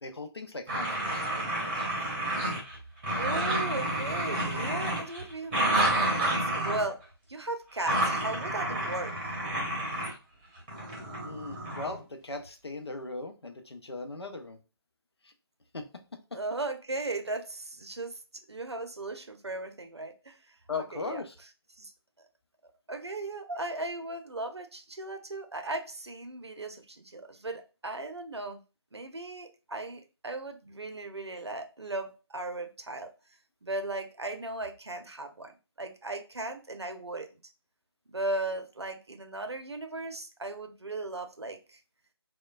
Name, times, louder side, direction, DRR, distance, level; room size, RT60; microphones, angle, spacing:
voice 1, 0.0-1.9 11.2-14.6 15.2-15.3 15.7-15.9 16.3-16.4 20.7-21.3, left 3 dB, 80° left, 5 dB, 0.5 m, -39 dB
sound 1, 0.7-2.8 3.0-6.9 7.9-10.1 10.7-12.0, right 1 dB, 25° right, 0.9 m, -30 dB
voice 2, 3.1-7.0 7.3-9.3 16.3-18.2 18.5-21.2 21.8-21.9 22.9-28.6 28.9-33.1 33.6-35.5 35.8-37.3 38.1-41.8, right 2 dB, 85° right, 6 dB, 0.5 m, -37 dB
2.9 x 2.1 x 2.3 m, 0.31 s
figure-of-eight pair, 150°, 13 cm